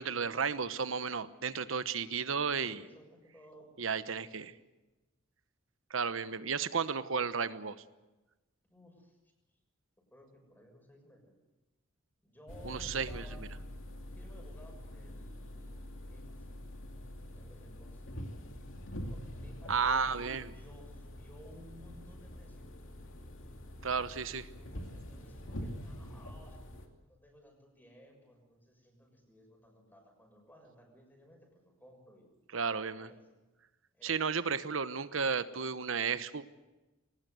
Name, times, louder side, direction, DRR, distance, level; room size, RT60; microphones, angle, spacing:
voice 1, 0.0-2.8 3.8-4.5 5.9-7.8 12.6-13.2 19.7-20.5 23.8-24.5 32.5-33.1 34.0-36.5, right 5 dB, 75° right, 13 dB, 1.0 m, -33 dB
voice 2, 2.6-3.7 4.2-4.5 8.7-9.3 10.1-11.4 12.2-13.5 14.2-16.5 17.2-18.0 18.9-22.7 24.5-26.6 27.0-32.3 32.8-33.2 33.9-34.3, equal, 10° left, 2 dB, 6.5 m, -58 dB
sound 1, 12.5-26.9, equal, 70° left, 2.7 m, -45 dB
22.0 x 19.0 x 8.0 m, 1.1 s
head